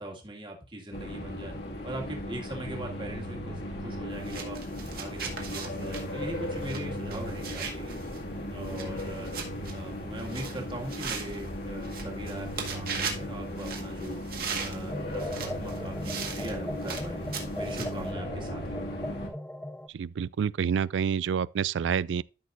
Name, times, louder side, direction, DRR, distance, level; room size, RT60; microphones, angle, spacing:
voice 1, 0.0-1.5 1.8-4.6 5.0-8.0 8.5-9.3 9.7-18.8, right 1 dB, 25° right, 2.1 m, -40 dB
sound 1, 0.9-19.3, left 1 dB, 65° left, 2.1 m, -37 dB
sound 2, 4.1-18.1, right 6 dB, 55° right, 1.9 m, -39 dB
sound 3, 14.9-19.9, left 1 dB, 5° left, 0.4 m, -39 dB
voice 2, 19.9-22.2, right 7 dB, 85° right, 0.3 m, -28 dB
12.5 x 6.3 x 2.6 m
head